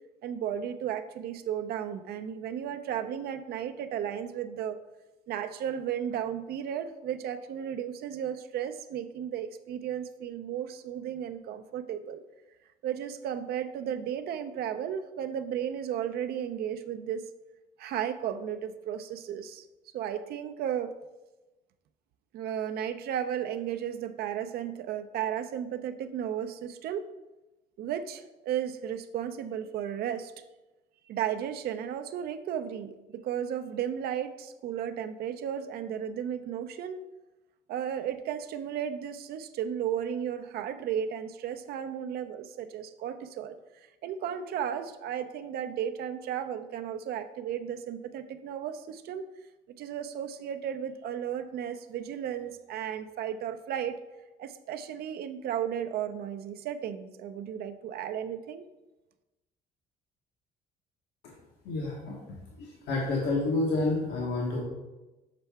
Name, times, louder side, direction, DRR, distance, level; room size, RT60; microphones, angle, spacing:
voice 1, 0.2-4.8 5.3-12.2 12.8-17.2 17.8-19.6 19.9-20.9 22.3-27.1 27.8-30.3 31.1-37.1 37.7-43.6 44.0-49.3 49.8-54.0 54.4-58.7, right 9 dB, 65° right, 8 dB, 0.5 m, -34 dB
voice 2, 61.6-62.2 62.6-64.6, left 2 dB, 85° left, -3 dB, 1.2 m, -29 dB
6.7 x 4.4 x 3.5 m, 1.1 s
cardioid pair, 110°, 17 cm